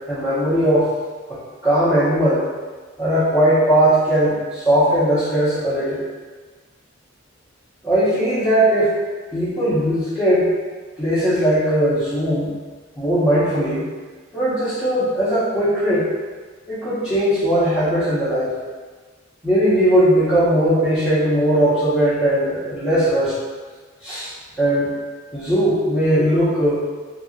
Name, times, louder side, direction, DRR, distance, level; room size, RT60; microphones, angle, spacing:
voice 1, 0.1-0.9 1.3-2.5 3.0-6.0 7.8-8.9 9.3-10.5 11.0-12.5 12.9-13.8 14.3-16.1 16.7-18.5 19.4-23.3 24.0-24.3 24.6-24.9 25.3-26.8, right 1 dB, 5° right, -18 dB, 0.9 m, -18 dB
3.0 x 2.8 x 2.7 m, 1.4 s
head